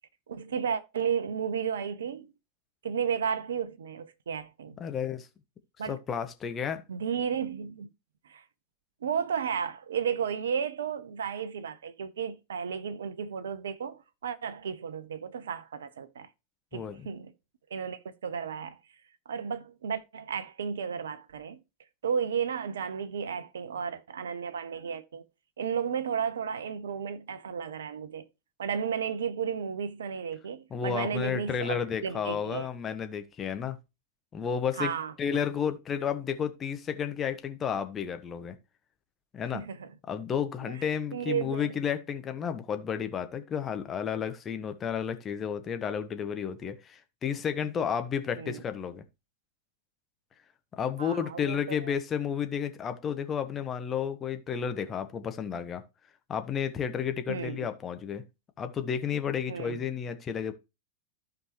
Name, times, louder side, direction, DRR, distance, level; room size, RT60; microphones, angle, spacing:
voice 1, 0.3-2.3 2.8-4.8 5.8-6.0 6.9-7.9 8.2-8.4 9.0-16.3 16.7-17.3 17.7-18.8 19.3-21.6 22.0-25.2 25.6-28.2 28.6-31.8 32.0-32.7 34.8-35.1 39.5-39.9 40.6-41.7 48.4-48.6 51.0-51.9 57.3-57.7 59.5-59.8, right 7 dB, 65° right, 0.8 m, -33 dB
voice 2, 4.8-5.3 5.8-6.8 16.7-17.1 30.7-33.8 34.3-34.9 35.2-38.6 39.3-39.6 40.1-49.0 50.7-55.8 56.3-58.2 58.6-60.5, left 7 dB, 25° left, 1.1 m, -32 dB
14.0 x 5.2 x 3.1 m
figure-of-eight pair, 90°, 0 cm